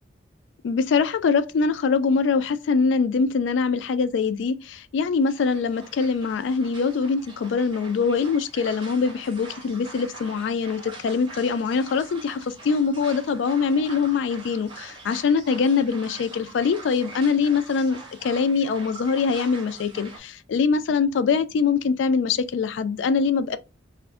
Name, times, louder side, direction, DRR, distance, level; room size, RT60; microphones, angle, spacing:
voice 1, 0.6-23.6, left 5 dB, 80° left, 0.3 m, -23 dB
sound 1, 5.2-20.2, right 3 dB, 25° right, 0.6 m, -44 dB
2.4 x 2.1 x 3.4 m
head